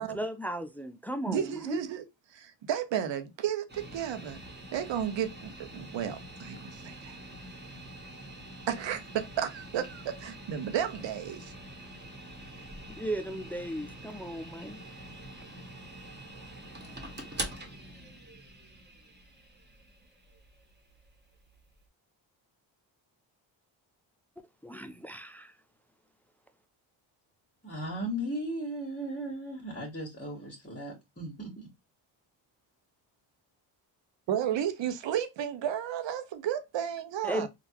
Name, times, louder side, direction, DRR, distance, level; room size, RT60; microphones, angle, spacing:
voice 1, 0.0-1.8 12.9-14.8 24.4-25.5 37.2-37.5, right 1 dB, 5° left, 0.4 m, -36 dB
voice 2, 1.3-2.0 2.3-4.4 4.7-7.2 8.7-11.5 34.3-37.5, right 9 dB, 60° right, 0.9 m, -33 dB
sound 1, 3.7-21.8, right 1 dB, 20° right, 1.4 m, -45 dB
voice 3, 27.6-31.7, equal, 20° left, 1.5 m, -36 dB
3.7 x 2.4 x 2.8 m
supercardioid pair, 60°, 50 cm